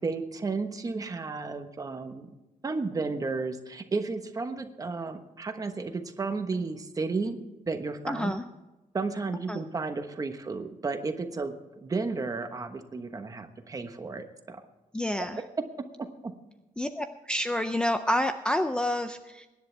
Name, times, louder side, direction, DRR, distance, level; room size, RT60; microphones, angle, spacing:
voice 1, 0.0-2.3 2.6-7.4 7.7-8.3 8.9-14.6, right 4 dB, 25° right, 7 dB, 1.2 m, -33 dB
voice 2, 8.1-8.4 9.5-9.6 14.9-15.4 16.8-19.5, left 1 dB, 5° left, 8 dB, 0.4 m, -28 dB
23.5 x 10.5 x 3.4 m, 1.1 s
wide cardioid pair, 165°, 14 cm